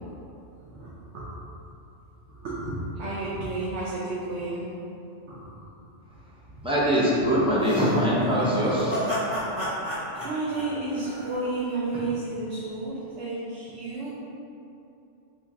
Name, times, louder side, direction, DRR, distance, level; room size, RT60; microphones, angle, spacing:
voice 1, 0.6-1.2 2.3-4.7 5.3-5.6 6.5-6.7 8.7-8.8 10.2-14.1, right 2 dB, 75° right, -9 dB, 0.9 m, -32 dB
voice 2, 6.6-9.0, equal, 10° right, -9 dB, 0.4 m, -22 dB
sound 1, 7.6-11.7, equal, 40° right, 1.2 m, -32 dB
3.0 x 2.8 x 3.4 m, 2.8 s
omnidirectional pair, 1.2 m